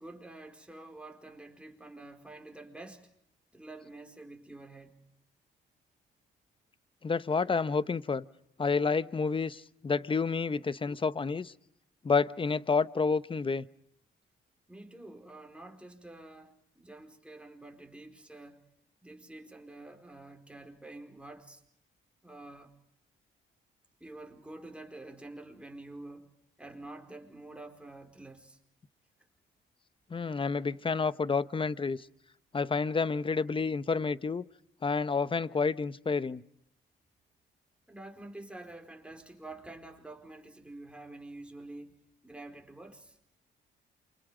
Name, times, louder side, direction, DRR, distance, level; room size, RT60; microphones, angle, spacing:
voice 1, 0.0-3.1 3.5-5.0 14.7-18.6 19.0-21.6 22.2-22.7 24.0-26.3 26.6-28.6 37.9-41.9 42.2-43.2, right 2 dB, 5° right, 4.8 m, -48 dB
voice 2, 7.0-8.2 8.6-11.5 12.0-13.6 30.1-32.1 32.5-34.4 34.8-36.4, left 4 dB, 25° left, 0.9 m, -29 dB
28.5 x 26.0 x 5.1 m
cardioid pair, 90°, 20 cm